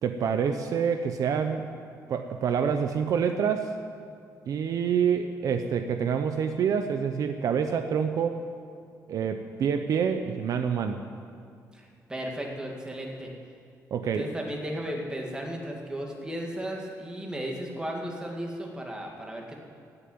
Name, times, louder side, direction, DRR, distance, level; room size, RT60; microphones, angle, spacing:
voice 1, 0.0-1.7 2.1-3.7 4.5-8.4 9.1-11.0 13.9-14.3, right 7 dB, 60° right, 7 dB, 0.7 m, -27 dB
voice 2, 11.7-13.3 14.0-19.6, equal, 10° right, 0 dB, 2.2 m, -35 dB
16.5 x 6.9 x 9.4 m, 2.3 s
cardioid pair, 135°, 7 cm